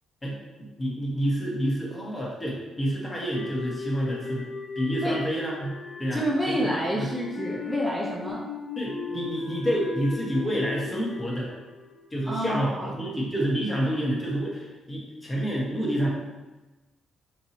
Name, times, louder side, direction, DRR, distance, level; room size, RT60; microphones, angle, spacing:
voice 1, 0.8-4.4 4.7-7.1 8.8-11.5 12.1-16.1, equal, 20° left, -4 dB, 1.3 m, -28 dB
sound 1, 3.3-12.6, left 5 dB, 65° left, 0.6 m, -37 dB
voice 2, 6.1-8.4 12.3-12.9, right 1 dB, 15° right, -4 dB, 0.8 m, -28 dB
4.5 x 2.8 x 2.9 m, 1.1 s
supercardioid pair, 65°, 0 cm